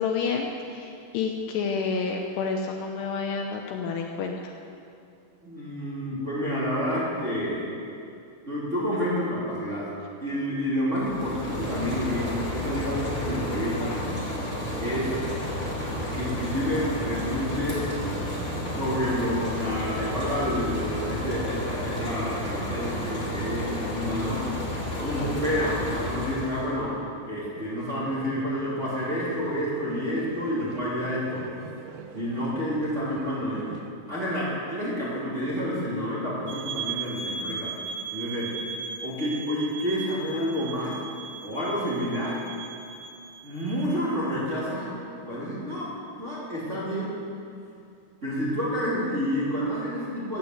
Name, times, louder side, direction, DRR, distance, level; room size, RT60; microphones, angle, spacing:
voice 1, 0.0-4.5, left 5 dB, 75° left, 2 dB, 2.7 m, -29 dB
voice 2, 5.4-7.7 8.5-9.9 10.2-14.0 14.8-15.2 16.1-17.9 18.7-24.5 25.0-27.0 27.2-31.4 32.1-33.7 34.1-37.7 38.1-38.5 39.0-41.0 41.4-42.4 43.4-45.9 46.2-47.2 48.2-50.4, equal, 20° right, -8 dB, 2.6 m, -29 dB
sound 1, 10.9-26.7, left 1 dB, 15° left, 2.5 m, -31 dB
sound 2, 27.5-33.9, right 6 dB, 75° right, 2.3 m, -44 dB
sound 3, 36.5-43.8, right 6 dB, 55° right, 1.9 m, -37 dB
15.5 x 9.0 x 7.9 m, 2.6 s
omnidirectional pair, 5.3 m